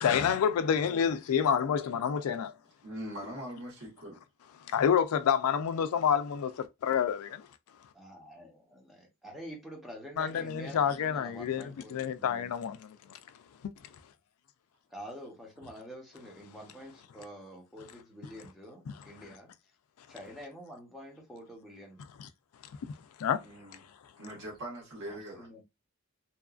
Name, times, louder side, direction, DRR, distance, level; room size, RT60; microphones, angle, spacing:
voice 1, 0.0-2.5 4.6-7.5 10.2-13.2 13.6-13.7 22.2-22.3 23.2-23.4, left 8 dB, 75° left, 0.3 m, -28 dB
voice 2, 0.6-1.2 7.9-12.5 14.9-19.5 20.1-22.0 25.1-25.6, equal, ahead, 0.8 m, -47 dB
voice 3, 2.8-4.2 23.4-23.8 24.2-25.5, right 1 dB, 55° right, 1.3 m, -42 dB
2.8 x 2.4 x 2.3 m
head